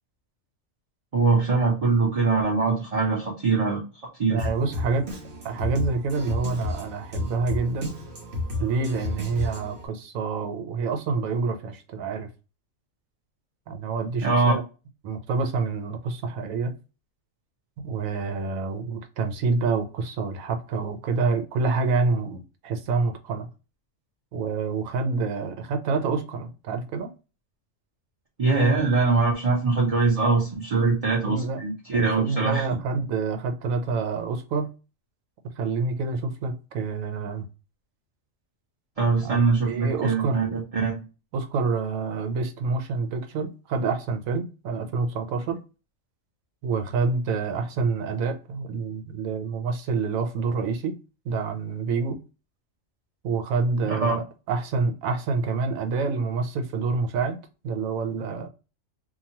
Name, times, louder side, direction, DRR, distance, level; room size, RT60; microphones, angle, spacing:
voice 1, 1.1-3.8 4.2-4.5 14.2-14.5 28.4-32.7 39.0-41.0 53.9-54.1, right 4 dB, 35° right, 0.7 m, -22 dB
voice 2, 4.3-5.1 5.4-8.0 8.6-12.3 13.7-14.6 15.0-16.7 17.8-23.5 24.3-27.1 31.2-31.6 31.9-34.7 35.6-37.5 39.2-39.4 39.6-40.4 41.3-45.6 46.6-50.9 51.3-52.2 53.2-57.4 57.6-58.5, right 4 dB, 85° right, 1.0 m, -27 dB
Drum kit, 4.4-9.9, left 2 dB, 55° right, 1.1 m, -32 dB
2.9 x 2.3 x 2.7 m
omnidirectional pair, 1.4 m